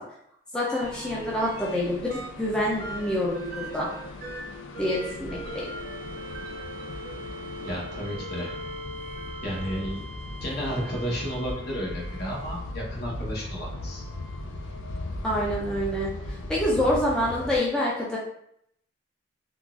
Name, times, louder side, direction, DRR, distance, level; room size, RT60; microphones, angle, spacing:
voice 1, 0.5-3.9 4.8-5.6 15.2-18.2, left 1 dB, 5° left, -6 dB, 0.4 m, -27 dB
sound 1, 0.7-1.8 2.1-12.9 13.7-15.3 17.0-17.1, right 1 dB, 50° right, 0.6 m, -41 dB
sound 2, 0.8-17.6, left 2 dB, 85° left, 0.4 m, -38 dB
voice 2, 7.6-8.5 9.4-10.0 10.4-14.0, equal, 55° left, -3 dB, 0.9 m, -32 dB
3.8 x 2.3 x 2.3 m, 0.74 s
head